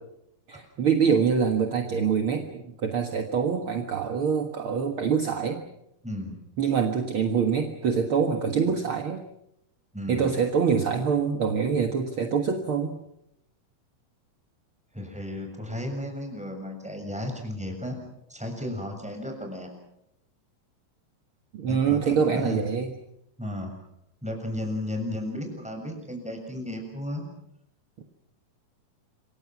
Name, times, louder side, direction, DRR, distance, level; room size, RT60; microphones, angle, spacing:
voice 1, 0.5-5.6 6.6-9.2 10.1-12.9 21.5-22.9, right 6 dB, 50° right, 4 dB, 1.7 m, -25 dB
voice 2, 6.0-6.3 9.9-10.3 14.9-18.0 18.3-19.7 21.6-22.6 23.4-23.7 24.2-27.2, left 1 dB, ahead, 3 dB, 6.5 m, -34 dB
27.5 x 24.0 x 6.1 m, 0.80 s
omnidirectional pair, 4.5 m